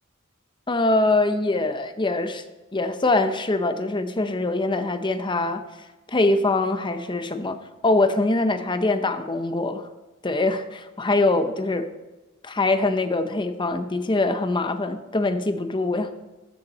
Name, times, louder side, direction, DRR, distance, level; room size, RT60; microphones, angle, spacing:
voice 1, 0.7-2.4 2.7-5.6 6.1-7.6 7.8-9.9 10.2-11.9 12.4-16.3, left 2 dB, 20° left, 9 dB, 0.7 m, -23 dB
14.0 x 6.7 x 4.1 m, 1.1 s
head